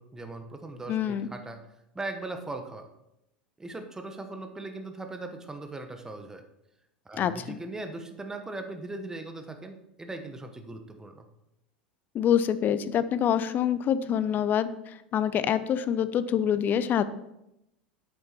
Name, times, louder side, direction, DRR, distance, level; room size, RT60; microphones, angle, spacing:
voice 1, 0.0-1.6 1.9-2.9 3.6-6.4 7.0-11.3, right 2 dB, 10° right, 6 dB, 1.0 m, -39 dB
voice 2, 0.9-1.3 7.2-7.6 12.1-17.0, left 9 dB, 35° left, 14 dB, 0.6 m, -26 dB
8.3 x 7.1 x 4.3 m, 0.84 s
figure-of-eight pair, 80°, 5 cm